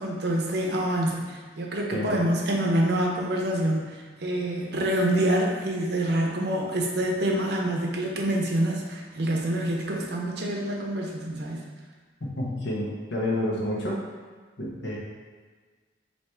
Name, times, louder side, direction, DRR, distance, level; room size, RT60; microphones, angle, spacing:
voice 1, 0.0-11.6, right 1 dB, 60° right, -1 dB, 0.6 m, -26 dB
voice 2, 12.4-14.0 14.6-15.0, left 1 dB, 75° left, -4 dB, 1.0 m, -29 dB
3.4 x 2.8 x 4.3 m, 1.5 s
head